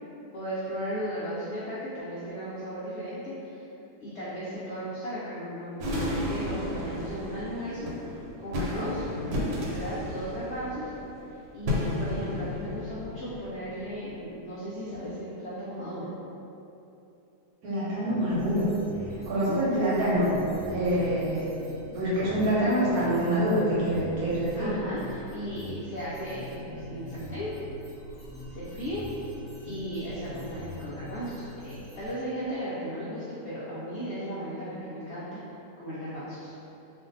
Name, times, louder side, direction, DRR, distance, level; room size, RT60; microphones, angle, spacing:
voice 1, 0.3-3.6 4.0-7.9 8.4-9.0 9.7-10.9 11.5-16.1 19.1-19.6 24.6-27.5 28.6-29.1 29.6-35.4 35.8-36.5, equal, 75° left, -9 dB, 0.6 m, -36 dB
sound 1, 5.8-14.0, left 1 dB, 90° right, 1.3 m, -33 dB
voice 2, 9.1-9.4 17.6-18.7 19.3-20.4 20.7-21.4 21.9-24.7, equal, 60° right, -9 dB, 1.2 m, -26 dB
sound 2, 18.3-32.1, equal, ahead, 1.1 m, -43 dB
2.5 x 2.5 x 3.8 m, 2.9 s
omnidirectional pair, 1.9 m